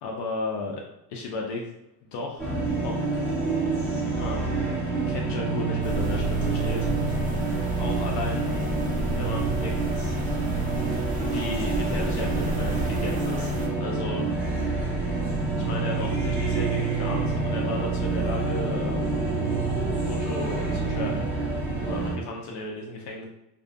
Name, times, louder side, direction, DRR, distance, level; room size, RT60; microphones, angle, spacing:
voice 1, 0.0-0.8 1.1-1.6 2.0-3.4 4.1-4.8 5.1-7.3 7.8-8.6 9.1-10.2 11.2-13.5 13.8-14.3 14.6-14.9 15.6-19.4 20.0-21.3 21.8-23.3, left 2 dB, 80° left, -1 dB, 0.6 m, -34 dB
sound 1, 2.4-22.1, right 3 dB, 5° left, 0.9 m, -27 dB
Storm coming l, 5.8-13.7, equal, 20° right, 0.4 m, -33 dB
2.4 x 2.2 x 2.5 m, 0.86 s
cardioid pair, 145°, 40 cm